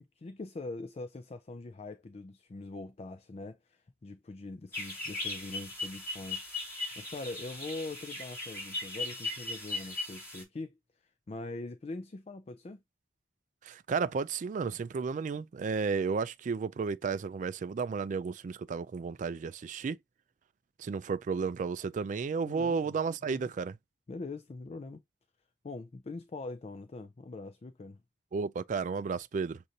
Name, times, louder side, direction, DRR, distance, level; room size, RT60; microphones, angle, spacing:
voice 1, 0.0-12.8 22.4-22.9 23.3-23.5 24.1-25.0 25.6-28.0, left 3 dB, 35° left, 0.4 m, -43 dB
sound 1, 4.7-10.4, left 2 dB, 15° left, 2.5 m, -38 dB
voice 2, 13.6-20.0 20.8-23.8 28.3-29.6, right 5 dB, 45° right, 0.3 m, -33 dB
6.4 x 2.6 x 2.7 m
head